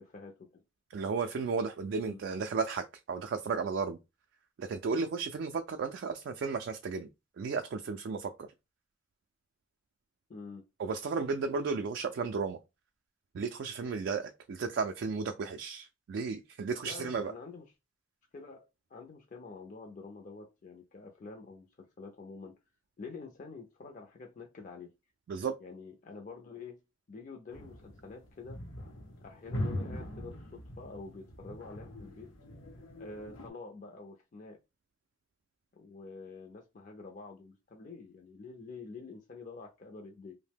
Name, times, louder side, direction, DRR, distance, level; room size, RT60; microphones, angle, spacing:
voice 1, 0.1-0.6 2.0-2.2 10.3-10.6 16.8-17.7 18.3-22.5 23.0-24.9 25.6-26.7 27.1-28.6 29.2-32.3 32.9-34.6 35.7-40.3, left 4 dB, 40° left, 0.4 m, -47 dB
voice 2, 0.9-4.0 4.6-7.1 7.4-8.5 10.8-12.6 13.3-17.3 25.3-25.5, right 5 dB, 60° right, 0.3 m, -34 dB
sound 1, 27.5-33.5, left 1 dB, 80° left, 0.7 m, -41 dB
2.7 x 2.0 x 3.3 m
head